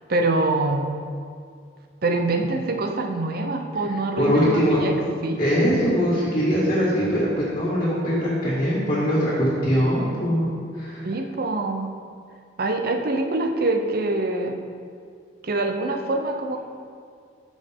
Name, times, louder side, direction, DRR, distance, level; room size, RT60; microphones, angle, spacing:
voice 1, 0.1-0.9 2.0-4.9 5.2-5.4 5.7-5.9 11.0-11.9 12.6-14.6 15.4-16.6, right 2 dB, 50° right, 5 dB, 0.7 m, -25 dB
voice 2, 4.2-4.8 5.4-10.4 10.7-11.1, equal, 30° left, -10 dB, 2.0 m, -22 dB
12.0 x 6.3 x 3.7 m, 2.2 s
head